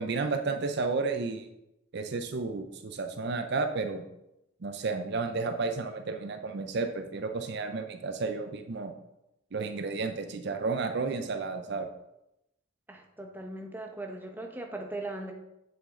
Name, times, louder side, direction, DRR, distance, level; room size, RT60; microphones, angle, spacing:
voice 1, 0.0-1.5 1.9-4.0 4.6-8.9 9.5-11.9, right 4 dB, 55° right, 7 dB, 0.6 m, -32 dB
voice 2, 12.9-15.3, right 2 dB, 10° right, 2 dB, 0.8 m, -39 dB
7.5 x 6.7 x 3.7 m, 0.87 s
head